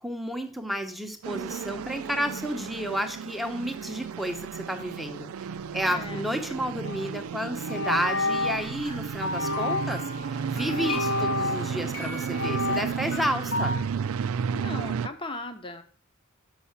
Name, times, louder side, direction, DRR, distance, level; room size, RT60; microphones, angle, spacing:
voice 1, 0.0-5.3 5.7-10.0 10.3-13.7, equal, ahead, 4 dB, 0.9 m, -31 dB
sound 1, 1.2-15.1, right 6 dB, 85° right, 0.4 m, -33 dB
voice 2, 5.8-6.7 14.5-15.8, left 2 dB, 25° left, 7 dB, 0.9 m, -38 dB
sound 2, 6.8-7.1 7.7-8.7 9.3-10.1 10.7-11.9 12.3-12.9, left 2 dB, 60° left, 0.5 m, -29 dB
sound 3, 8.0-13.8, left 2 dB, 90° left, 2.8 m, -37 dB
7.0 x 5.7 x 5.7 m, 0.43 s
head